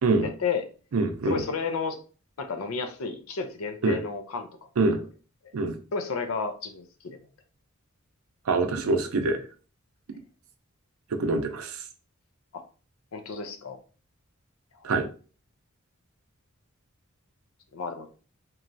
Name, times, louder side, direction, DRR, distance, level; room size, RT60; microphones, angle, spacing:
voice 1, 0.2-0.6 1.3-2.0 2.4-4.5 5.9-7.2 12.5-12.6 13.1-13.8 17.7-18.1, left 5 dB, 90° left, 7 dB, 0.5 m, -31 dB
voice 2, 0.9-1.4 3.8-4.0 4.8-5.0 5.5-5.7 8.5-9.4 11.1-11.8 14.8-15.1, right 3 dB, 80° right, 6 dB, 0.5 m, -25 dB
3.0 x 2.3 x 2.6 m, 0.38 s
head